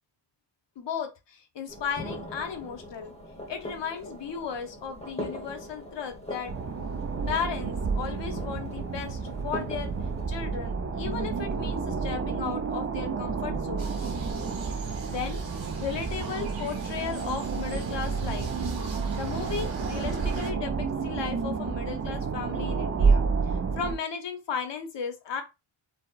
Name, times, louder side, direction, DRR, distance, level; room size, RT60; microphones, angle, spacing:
voice 1, 0.8-3.1 3.5-6.5 7.3-9.9 10.3-14.1 15.1-15.4 15.8-18.5 19.1-25.4, left 6 dB, 70° left, 6 dB, 0.8 m, -35 dB
sound 1, 1.7-10.3, left 1 dB, 15° left, 0.8 m, -41 dB
sound 2, 6.5-24.0, right 5 dB, 35° right, 0.4 m, -30 dB
sound 3, 13.8-20.5, right 5 dB, 85° right, 0.8 m, -44 dB
4.1 x 2.1 x 2.3 m, 0.25 s
wide cardioid pair, 155°, 45 cm